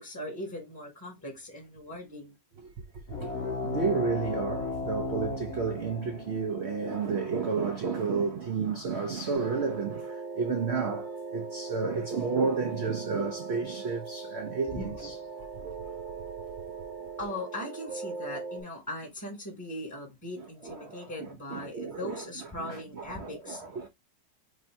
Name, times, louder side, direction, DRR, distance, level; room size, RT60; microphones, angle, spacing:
voice 1, 0.0-2.4 14.7-15.5 17.2-23.6, left 1 dB, 15° left, 0.8 m, -40 dB
voice 2, 2.9-3.3 3.6-15.1 15.5-16.0 20.4-22.2 22.6-23.9, right 5 dB, 75° right, 0.5 m, -32 dB
sound 1, 3.1-8.2, left 3 dB, 45° left, 1.0 m, -36 dB
sound 2, 9.3-18.6, right 4 dB, 35° right, 0.9 m, -39 dB
3.3 x 2.6 x 4.3 m
omnidirectional pair, 1.9 m